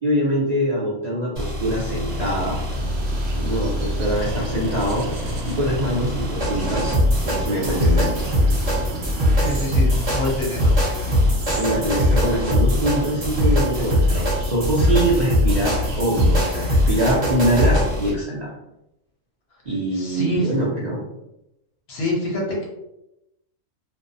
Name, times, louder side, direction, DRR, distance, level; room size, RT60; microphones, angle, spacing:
voice 1, 0.0-2.6 3.4-5.1 5.5-7.0 7.2-8.1 11.6-18.5 19.7-21.0, right 1 dB, 55° right, -6 dB, 0.4 m, -23 dB
sound 1, 1.3-18.1, equal, 35° right, 0.9 m, -22 dB
sound 2, 2.1-18.2, right 1 dB, 80° right, 0.9 m, -33 dB
voice 2, 9.4-10.7 19.9-20.5 21.9-22.7, left 1 dB, 60° left, -2 dB, 0.8 m, -26 dB
2.5 x 2.0 x 2.6 m, 0.89 s
omnidirectional pair, 1.3 m